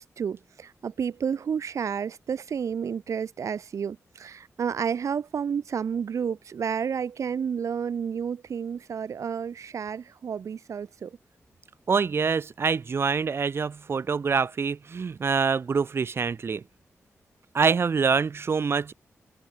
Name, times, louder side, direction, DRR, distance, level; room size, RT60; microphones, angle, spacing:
voice 1, 0.0-11.2, right 7 dB, 80° right, 2.8 m, -31 dB
voice 2, 11.9-16.6 17.5-18.9, right 5 dB, 50° right, 5.1 m, -25 dB
wide cardioid pair, 170°, 5 cm